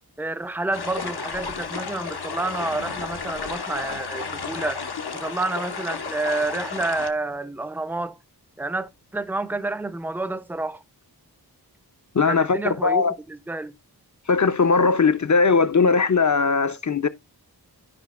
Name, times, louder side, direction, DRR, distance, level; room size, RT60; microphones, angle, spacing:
voice 1, 0.2-4.8 5.1-8.2 8.6-10.8 12.2-13.8, right 2 dB, 5° right, 0.6 m, -29 dB
sound 1, 0.7-7.1, left 5 dB, 70° left, 1.0 m, -32 dB
voice 2, 12.1-13.1 14.3-17.1, left 4 dB, 45° left, 0.7 m, -19 dB
13.5 x 5.0 x 2.5 m
wide cardioid pair, 55°, 40 cm